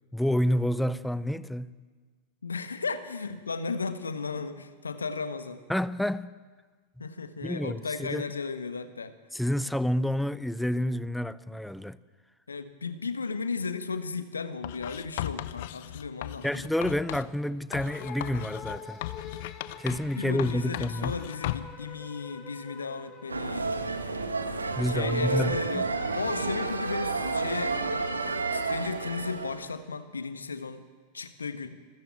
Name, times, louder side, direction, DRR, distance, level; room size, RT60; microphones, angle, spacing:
voice 1, 0.1-1.7 5.7-6.3 7.0-7.1 7.4-8.3 9.3-12.0 16.4-19.0 19.8-21.1 24.8-25.9, left 1 dB, ahead, 0.6 m, -29 dB
voice 2, 2.4-5.6 7.0-9.1 12.5-16.7 20.2-23.7 24.8-27.8 28.5-30.8 31.1-31.8, left 4 dB, 75° left, 1.4 m, -35 dB
Writing, 14.6-17.3 17.7-20.1 20.4-21.8, left 15 dB, 50° left, 0.8 m, -37 dB
sound 1, 17.7-24.3, left 6 dB, 25° left, 3.4 m, -45 dB
sound 2, 23.3-29.7, right 3 dB, 80° right, 1.6 m, -30 dB
26.0 x 14.5 x 8.9 m
figure-of-eight pair, 90°, 0 cm